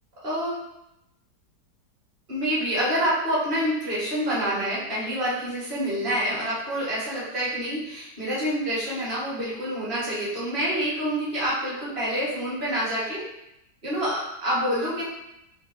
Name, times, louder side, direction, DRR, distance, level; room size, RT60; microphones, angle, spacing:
voice 1, 0.2-0.6 2.3-13.2 13.8-15.0, equal, 35° right, -8 dB, 1.3 m, -27 dB
3.8 x 3.2 x 2.5 m, 0.85 s
omnidirectional pair, 1.9 m